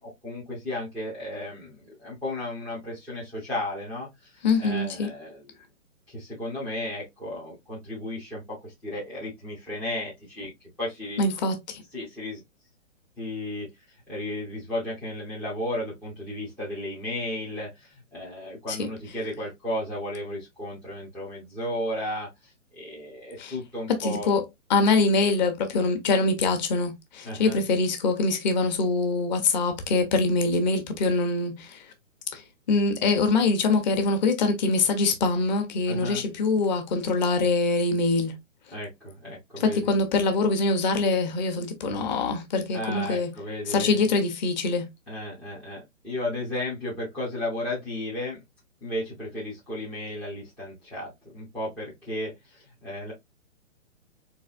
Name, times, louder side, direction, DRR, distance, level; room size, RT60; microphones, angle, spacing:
voice 1, 0.0-5.4 6.1-10.5 10.8-11.2 11.9-12.4 13.2-13.7 14.1-24.3 27.2-27.6 35.9-36.2 38.7-39.9 42.7-44.1 45.1-48.4 48.8-53.1, left 1 dB, 5° left, 0.5 m, -34 dB
voice 2, 4.4-5.1 11.2-11.8 18.7-18.8 23.4-23.6 23.9-24.4 24.7-31.9 32.3-38.4 39.6-43.3 43.7-44.9, left 3 dB, 35° left, 1.1 m, -24 dB
4.0 x 3.1 x 2.5 m
hypercardioid pair, 150°, 38 cm